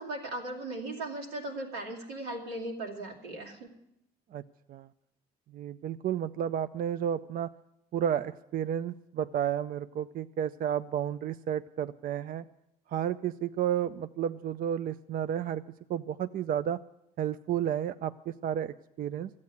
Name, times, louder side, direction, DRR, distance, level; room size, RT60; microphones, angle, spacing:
voice 1, 0.0-3.7, right 2 dB, 85° right, -1 dB, 2.6 m, -38 dB
voice 2, 5.5-7.5 7.9-12.4 12.9-15.6 15.9-16.8 17.2-19.3, right 9 dB, 50° right, 13 dB, 0.4 m, -32 dB
13.0 x 8.5 x 9.5 m, 0.81 s
hypercardioid pair, 65°, 19 cm